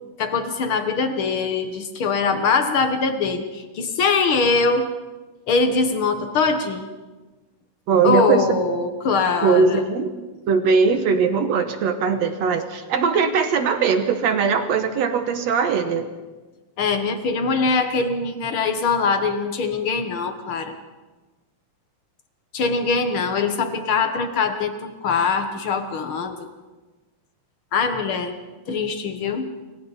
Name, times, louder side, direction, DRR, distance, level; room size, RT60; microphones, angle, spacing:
voice 1, 0.2-4.9 5.5-6.9 8.0-9.8 16.8-20.7 22.5-26.5 27.7-28.3 28.7-29.5, left 4 dB, 70° left, 7 dB, 1.2 m, -22 dB
voice 2, 7.9-8.4 9.4-10.2 10.5-16.1, right 5 dB, 70° right, 8 dB, 1.7 m, -20 dB
29.0 x 23.5 x 4.2 m, 1.2 s
omnidirectional pair, 4.4 m